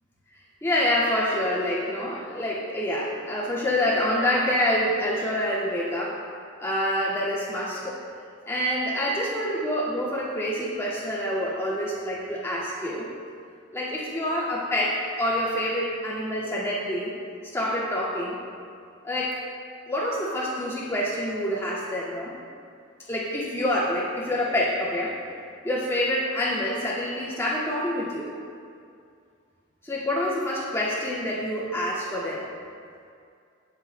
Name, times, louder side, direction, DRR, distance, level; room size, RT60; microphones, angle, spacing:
voice 1, 0.6-6.2 6.6-8.0 8.5-13.1 13.7-17.1 17.5-18.4 19.0-19.4 19.9-22.3 23.1-25.1 25.6-28.3 29.8-32.5, left 1 dB, 15° left, -7 dB, 2.0 m, -27 dB
19.5 x 7.5 x 2.2 m, 2.3 s
head